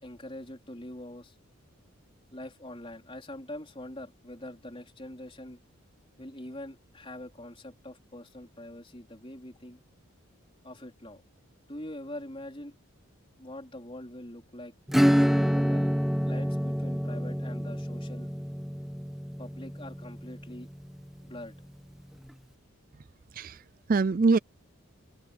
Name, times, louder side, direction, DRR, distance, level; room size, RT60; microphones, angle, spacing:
voice 1, 0.0-1.4 2.3-5.6 6.2-9.8 10.6-11.2 11.7-12.8 13.4-14.7 15.5-15.9 16.3-18.3 19.4-20.7 21.2-21.7, left 1 dB, 25° left, 4.3 m, -43 dB
Acoustic guitar / Strum, 14.9-21.1, equal, ahead, 1.2 m, -27 dB
voice 2, 23.3-24.4, right 3 dB, 40° right, 0.4 m, -25 dB
open air
head